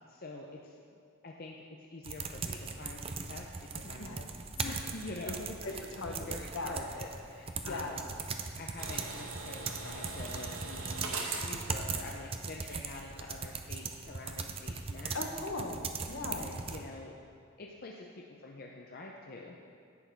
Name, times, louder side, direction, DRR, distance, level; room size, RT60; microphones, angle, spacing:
voice 1, 0.1-0.7 1.2-4.2 4.6-8.1 8.6-15.3 16.3-17.1 17.6-19.6, left 2 dB, 45° left, -1 dB, 0.6 m, -46 dB
sound 1, 2.0-16.8, right 5 dB, 25° right, 0.4 m, -40 dB
voice 2, 3.8-4.2 5.2-5.4 5.6-6.8 7.6-7.9 15.1-16.5, left 2 dB, 65° left, 3 dB, 1.0 m, -39 dB
sound 2, 8.8-12.8 13.1-13.2, right 3 dB, 75° right, 1.2 m, -41 dB
11.0 x 8.2 x 4.5 m, 2.3 s
head